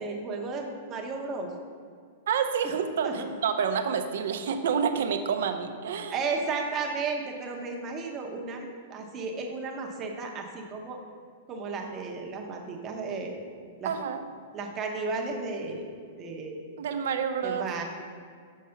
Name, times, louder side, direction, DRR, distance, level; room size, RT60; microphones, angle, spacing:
voice 1, 0.0-1.5 3.0-3.3 6.1-11.0 11.5-13.4 13.8-13.9 14.5-15.9 16.2-16.6 17.4-17.8, right 4 dB, 20° right, 1 dB, 0.8 m, -34 dB
voice 2, 2.3-6.1 13.8-14.2 16.8-17.6, right 7 dB, 70° right, 7 dB, 0.6 m, -28 dB
6.5 x 4.6 x 5.7 m, 2.1 s
supercardioid pair, 165°, 0 cm